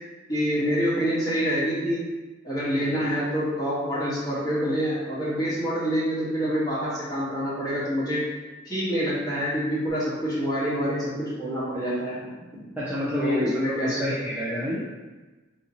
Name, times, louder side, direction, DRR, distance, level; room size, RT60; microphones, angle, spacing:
voice 1, 0.3-2.0 2.4-8.2 8.6-12.3 13.2-14.2, equal, 20° left, -9 dB, 1.2 m, -26 dB
voice 2, 12.8-14.8, left 1 dB, 10° right, -8 dB, 0.4 m, -28 dB
3.6 x 2.8 x 2.7 m, 1.2 s
head